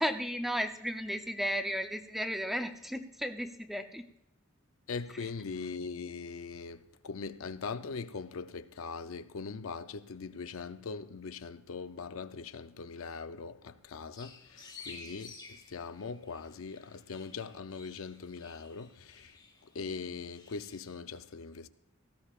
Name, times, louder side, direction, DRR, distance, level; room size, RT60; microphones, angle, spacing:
voice 1, 0.0-4.1, equal, ahead, 0.6 m, -34 dB
voice 2, 4.9-19.4 19.6-21.7, left 4 dB, 80° left, 0.5 m, -41 dB
sound 1, 14.2-21.0, left 4 dB, 20° left, 1.4 m, -53 dB
18.0 x 15.0 x 2.4 m
head